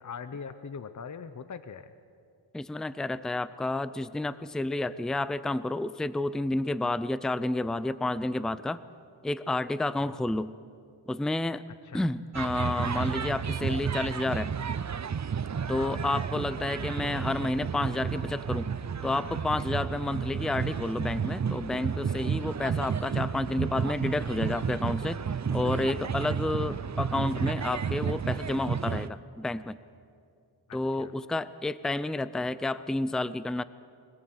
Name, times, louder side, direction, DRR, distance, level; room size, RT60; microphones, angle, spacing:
voice 1, 0.0-1.9 10.0-10.2 11.8-12.0 15.7-16.0 20.0-20.2 22.5-22.7 30.7-31.1, left 6 dB, 40° left, 11 dB, 0.8 m, -42 dB
voice 2, 2.5-8.8 9.2-10.5 11.1-11.6 11.9-14.5 15.7-18.7 19.0-25.2 25.5-29.8 30.7-33.6, left 2 dB, ahead, 15 dB, 0.5 m, -30 dB
sound 1, 12.3-29.1, right 6 dB, 40° right, 0.7 m, -32 dB
25.0 x 18.5 x 8.0 m, 2.3 s
wide cardioid pair, 115°, 45 cm